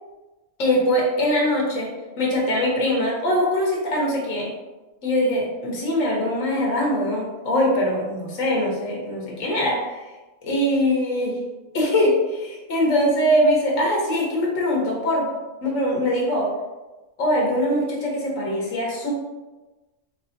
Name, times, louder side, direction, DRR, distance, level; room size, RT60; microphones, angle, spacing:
voice 1, 0.6-1.9 2.2-4.5 5.0-10.0 10.4-11.3 11.7-15.3 15.6-16.5 17.2-19.1, left 1 dB, 80° left, -2 dB, 1.4 m, -22 dB
4.7 x 2.5 x 2.6 m, 1.1 s
omnidirectional pair, 1.3 m